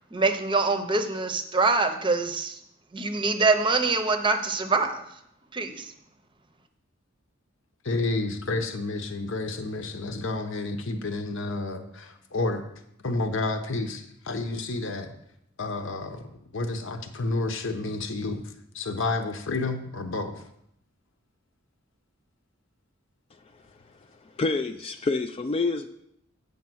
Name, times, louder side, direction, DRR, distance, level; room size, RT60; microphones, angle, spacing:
voice 1, 0.1-2.6 2.9-5.0 5.5-5.9, right 3 dB, 25° right, 8 dB, 0.7 m, -24 dB
voice 2, 7.8-12.7 13.0-15.1 15.6-18.4 18.7-20.4, left 2 dB, 65° left, 7 dB, 0.9 m, -30 dB
voice 3, 24.2-25.9, left 3 dB, 30° left, 8 dB, 0.3 m, -28 dB
8.3 x 5.4 x 6.1 m, 0.76 s
head